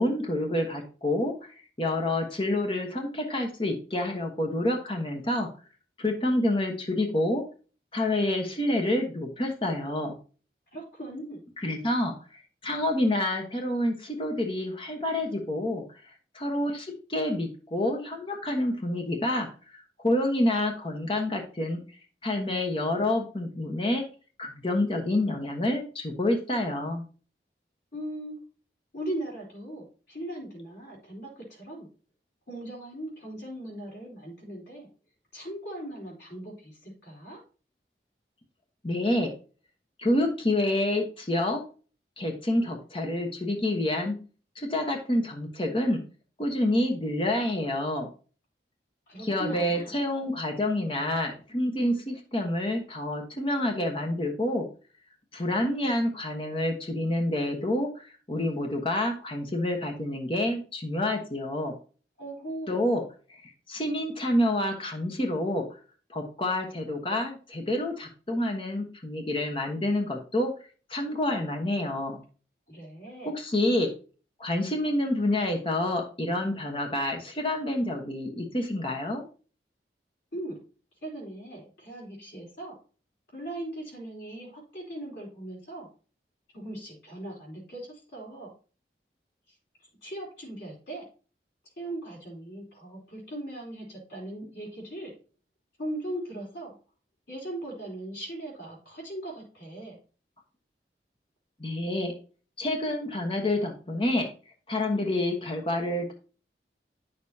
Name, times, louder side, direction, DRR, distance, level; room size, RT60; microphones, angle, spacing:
voice 1, 0.0-1.3 1.8-5.5 6.0-7.4 7.9-10.2 11.6-12.1 12.6-15.8 16.3-19.5 19.7-21.8 22.2-24.0 24.4-27.0 38.8-39.3 40.0-41.6 42.2-44.2 44.6-46.0 46.4-48.1 49.2-54.6 55.3-61.7 62.7-63.0 63.4-65.6 66.1-70.5 70.9-72.2 73.3-73.9 74.4-79.2 101.6-102.1 102.6-104.3 104.7-106.1, left 1 dB, 30° left, 2 dB, 1.1 m, -28 dB
voice 2, 10.7-11.4 27.9-28.4 28.9-31.9 32.5-34.9 35.3-37.4 49.1-49.9 62.2-62.9 72.7-73.3 80.3-80.6 81.0-82.7 83.3-85.9 86.5-88.5 90.0-91.0 91.8-95.1 95.8-96.7 97.3-100.0, right 1 dB, 80° left, -3 dB, 3.5 m, -39 dB
9.3 x 6.5 x 2.8 m, 0.37 s
head